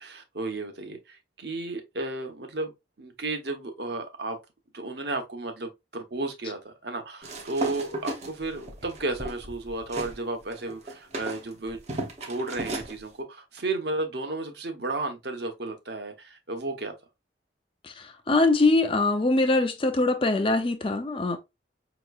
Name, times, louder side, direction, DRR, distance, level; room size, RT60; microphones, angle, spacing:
voice 1, 0.0-2.7 3.0-4.4 4.7-11.8 12.2-16.9, right 2 dB, 60° right, 1.0 m, -33 dB
sound 1, 7.2-10.2 10.5-12.9, right 1 dB, 35° right, 0.8 m, -35 dB
voice 2, 17.8-21.4, left 2 dB, 30° left, 0.5 m, -23 dB
5.6 x 3.0 x 2.3 m
head